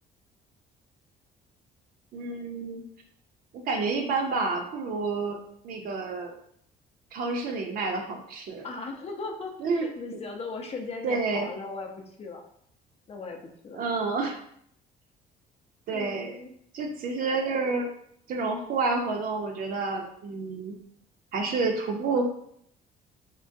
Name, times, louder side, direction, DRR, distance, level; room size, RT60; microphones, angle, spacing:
voice 1, 2.1-2.8 3.7-5.4 5.6-6.3 7.1-8.7 9.6-9.9 11.0-11.5 13.7-14.4 15.9-16.4 16.7-17.9 18.3-20.8 21.3-22.3, right 3 dB, 60° right, 2 dB, 0.6 m, -29 dB
voice 2, 8.6-9.5 9.8-12.4 13.1-13.8 15.9-16.5, left 3 dB, 35° left, 2 dB, 0.5 m, -38 dB
3.7 x 2.1 x 2.6 m, 0.67 s
cardioid pair, 110°, 17 cm